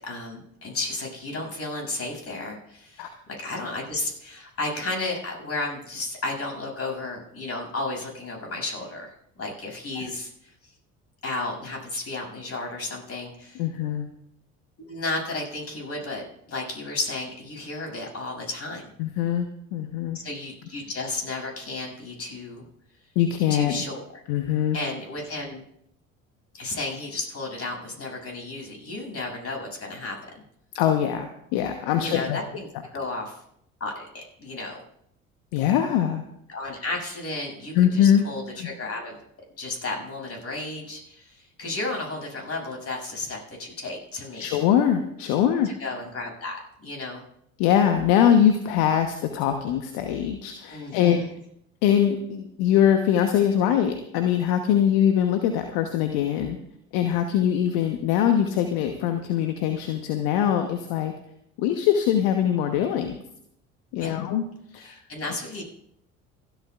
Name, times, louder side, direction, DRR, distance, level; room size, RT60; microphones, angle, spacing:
voice 1, 0.0-3.1 3.4-10.7 11.2-13.6 14.8-18.8 20.2-22.6 23.5-24.1 24.7-25.6 26.5-30.4 32.0-32.7 32.9-33.4 33.8-34.8 36.5-39.2 39.6-44.5 45.8-47.2 50.7-51.3 64.0-64.2 64.8-65.6, left 2 dB, 35° left, 1 dB, 7.4 m, -33 dB
voice 2, 13.6-14.1 19.0-20.2 23.1-23.8 24.3-24.8 30.7-32.4 35.5-36.2 37.7-38.2 38.6-38.7 44.4-45.7 47.6-51.2 51.8-56.6 56.9-61.1 61.6-63.2 63.9-64.4 64.7-64.9, left 9 dB, 60° left, 7 dB, 1.2 m, -22 dB
28.5 x 11.5 x 2.5 m, 0.73 s
figure-of-eight pair, 60°, 40 cm